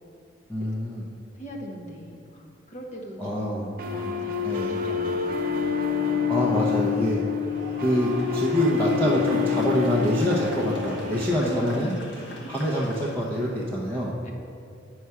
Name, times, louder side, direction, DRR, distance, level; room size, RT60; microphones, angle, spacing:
voice 1, 0.5-1.0 3.2-3.7 4.4-4.7 6.3-7.2 7.8-11.9 12.5-14.1, equal, 10° left, -7 dB, 0.8 m, -25 dB
voice 2, 1.3-5.7 11.4-12.5 14.2-14.3, equal, 35° left, 0 dB, 1.1 m, -39 dB
sound 1, 3.8-11.8, left 7 dB, 45° right, 0.6 m, -27 dB
Car / Accelerating revving vroom, 4.2-9.1, equal, 10° right, 1.2 m, -48 dB
sound 2, 7.4-13.4, left 1 dB, 65° left, 1.4 m, -43 dB
9.0 x 4.8 x 5.6 m, 2.4 s
head